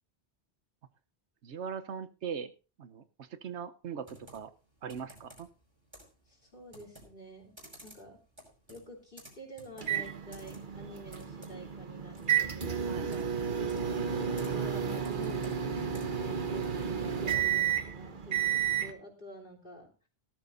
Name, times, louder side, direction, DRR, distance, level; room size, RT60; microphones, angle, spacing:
voice 1, 1.4-2.5 2.8-4.5 4.8-5.5 12.7-13.7, right 7 dB, 85° right, 13 dB, 1.2 m, -41 dB
Computer keyboard, 4.0-16.3, equal, 25° right, 4.9 m, -56 dB
voice 2, 6.3-8.2 8.7-13.0 13.8-15.7 16.1-19.9, equal, 50° left, 2 dB, 3.6 m, -48 dB
sound 1, 9.8-18.9, right 8 dB, 50° right, 1.3 m, -32 dB
18.0 x 13.0 x 2.6 m, 0.33 s
omnidirectional pair, 1.1 m